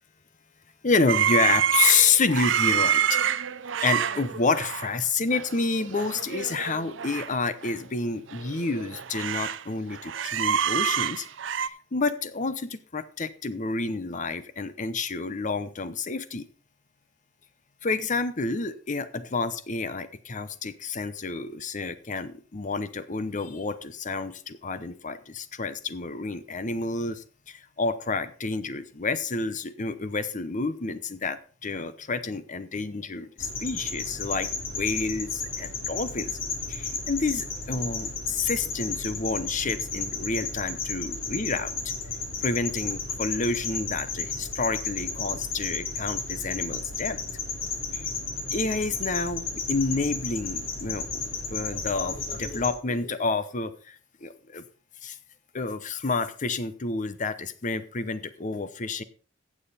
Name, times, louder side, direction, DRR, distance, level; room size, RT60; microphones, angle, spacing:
voice 1, 0.8-3.2 3.8-11.3 11.6-16.5 17.8-36.3 36.7-41.9 42.4-47.2 47.9-48.1 48.5-54.6 55.0-55.2 55.5-59.0, left 4 dB, 40° left, 13 dB, 0.8 m, -29 dB
sound 1, 1.1-4.9 5.3-5.5 5.8-7.3 7.6-7.7 8.3-9.6 9.9-11.7, right 9 dB, 70° right, 0.6 m, -27 dB
sound 2, 33.4-52.7, left 4 dB, 80° left, 3.1 m, -33 dB
15.5 x 7.4 x 4.3 m, 0.41 s
head